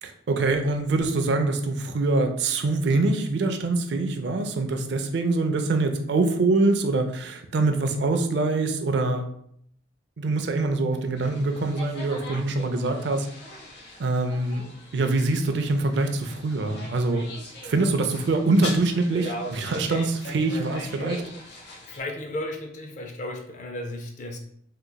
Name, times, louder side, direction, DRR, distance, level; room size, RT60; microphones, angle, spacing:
voice 1, 0.0-9.2 10.2-13.3 14.0-14.6 14.9-17.3 17.6-21.2, right 3 dB, 60° right, 5 dB, 0.4 m, -24 dB
sound 1, 11.2-22.0, equal, 55° left, 0.8 m, -40 dB
voice 2, 21.9-24.4, left 1 dB, 40° left, 3 dB, 0.4 m, -34 dB
3.7 x 2.9 x 2.2 m, 0.67 s
head